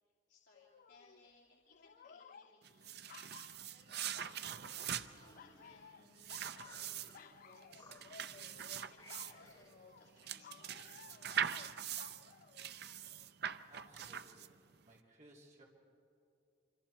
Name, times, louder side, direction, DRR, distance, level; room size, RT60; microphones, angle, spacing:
voice 1, 0.3-2.9 3.6-5.9 6.1-10.8, left 2 dB, 65° left, -5 dB, 2.9 m, -66 dB
sound 1, 0.5-1.3 1.7-4.4 4.7-5.1 5.3-13.3 13.8-13.9, left 6 dB, 50° left, 0.4 m, -58 dB
sound 2, 2.6-14.8, right 9 dB, 60° right, 0.6 m, -43 dB
sound 3, 4.6-6.1 6.6-7.4 7.7-8.5 8.9-9.8, left 1 dB, 20° left, 3.6 m, -62 dB
voice 2, 13.7-15.6, right 1 dB, 40° right, -3 dB, 3.5 m, -62 dB
26.0 x 26.0 x 4.4 m, 2.7 s
head